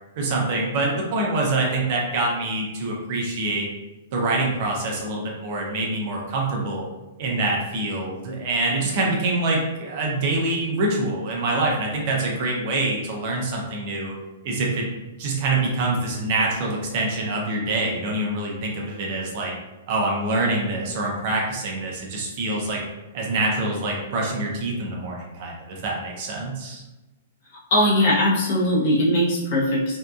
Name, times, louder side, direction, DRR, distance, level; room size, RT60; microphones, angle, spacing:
voice 1, 0.2-3.7 4.1-6.9 7.2-14.1 14.4-14.9 15.2-19.5 19.9-22.8 23.1-26.8, right 2 dB, 40° right, -1 dB, 0.5 m, -25 dB
voice 2, 27.7-30.0, left 1 dB, 45° left, -5 dB, 0.8 m, -20 dB
2.7 x 2.3 x 2.3 m, 1.1 s
hypercardioid pair, 165°, 0 cm